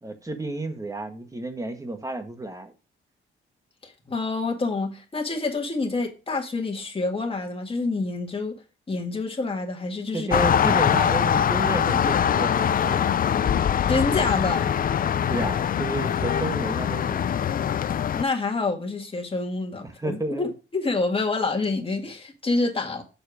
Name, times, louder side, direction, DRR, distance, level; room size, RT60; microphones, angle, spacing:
voice 1, 0.0-2.7 10.1-13.5 15.3-17.3 19.8-20.5, right 2 dB, 15° right, 1.3 m, -31 dB
voice 2, 3.8-8.6 8.9-10.3 13.9-14.7 18.1-23.0, left 3 dB, 25° left, 1.8 m, -27 dB
sound 1, 10.3-18.2, left 8 dB, 45° left, 0.4 m, -23 dB
6.9 x 4.3 x 4.8 m
cardioid pair, 90°, 21 cm